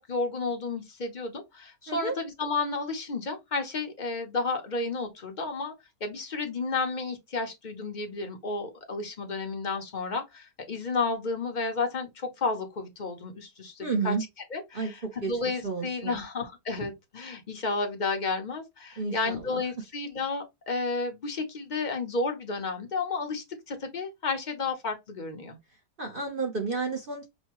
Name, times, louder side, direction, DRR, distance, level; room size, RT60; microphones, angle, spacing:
voice 1, 0.1-5.7 6.0-14.1 14.5-25.6, left 3 dB, 35° left, 0.8 m, -32 dB
voice 2, 13.8-14.2 14.7-15.3 15.6-16.2 19.0-19.6 26.0-27.3, right 4 dB, 40° right, 0.9 m, -31 dB
5.4 x 2.3 x 2.9 m
omnidirectional pair, 1.8 m